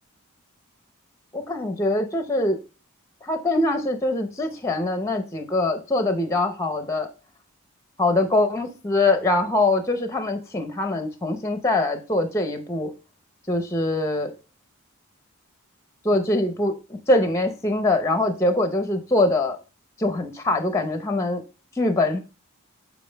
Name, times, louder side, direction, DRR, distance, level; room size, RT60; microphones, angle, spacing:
voice 1, 1.3-2.6 3.2-7.1 8.0-12.9 13.5-14.3 16.0-19.6 20.0-21.4 21.8-22.2, left 2 dB, 15° left, 0.6 m, -23 dB
7.5 x 4.6 x 3.3 m
head